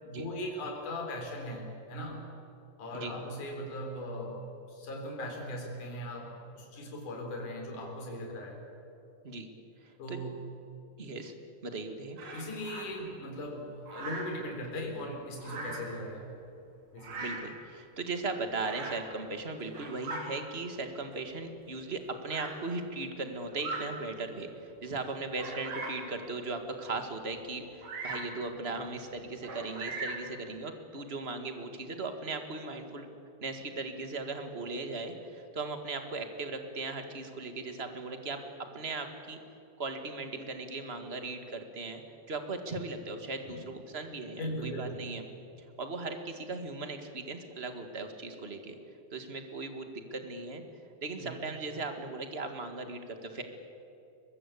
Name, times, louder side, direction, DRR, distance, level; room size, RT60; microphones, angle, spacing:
voice 1, 0.0-2.3 2.8-4.4 4.7-8.6 10.0-10.4 12.3-16.3 16.9-17.3 43.5-43.6 44.4-45.1 51.2-51.3, left 1 dB, 65° left, 1 dB, 5.5 m, -39 dB
voice 2, 9.8-10.2 11.0-11.3 11.6-12.2 17.2-33.1 33.4-38.4 38.7-39.4 39.8-42.0 42.3-45.3 45.8-48.7 49.1-50.6 51.0-53.4, right 3 dB, 30° right, 6 dB, 1.3 m, -38 dB
Bird vocalization bird call bird song, 12.2-12.9 13.9-14.4 15.4-15.9 17.0-17.5 18.6-19.1 19.6-20.3 21.1-21.2 22.3-22.6 23.5-23.9 24.5-24.6 25.3-26.1 27.8-28.3 29.4-30.3, right 3 dB, 65° right, 5.2 m, -39 dB
23.5 x 21.5 x 8.5 m, 2.8 s
omnidirectional pair, 3.9 m